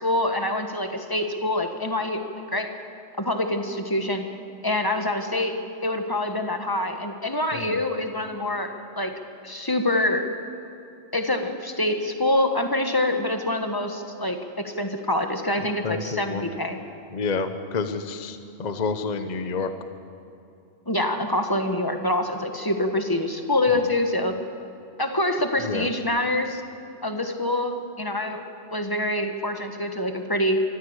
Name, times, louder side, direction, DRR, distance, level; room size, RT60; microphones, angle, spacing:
voice 1, 0.0-2.7 3.2-4.2 4.6-5.6 5.8-9.1 9.4-10.3 11.1-16.8 20.9-24.3 25.0-26.6 27.0-28.4 28.7-30.6, left 1 dB, 15° left, 5 dB, 1.5 m, -25 dB
voice 2, 15.8-16.5 17.1-19.7 23.7-23.9 25.6-25.9, left 4 dB, 40° left, 9 dB, 1.0 m, -29 dB
24.0 x 14.5 x 8.2 m, 2.7 s
omnidirectional pair, 1.3 m